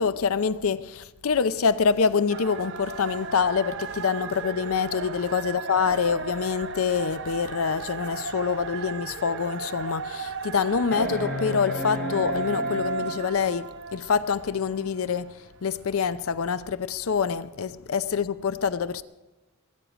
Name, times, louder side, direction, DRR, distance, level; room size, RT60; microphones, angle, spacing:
voice 1, 0.0-19.0, left 6 dB, 65° left, 0.5 m, -26 dB
sound 1, 2.3-15.1, right 4 dB, 55° right, 0.7 m, -35 dB
sound 2, 8.8-8.9 9.4-9.5 10.9-13.4 15.1-15.2, left 1 dB, 10° left, 3.5 m, -34 dB
21.5 x 9.3 x 5.0 m
head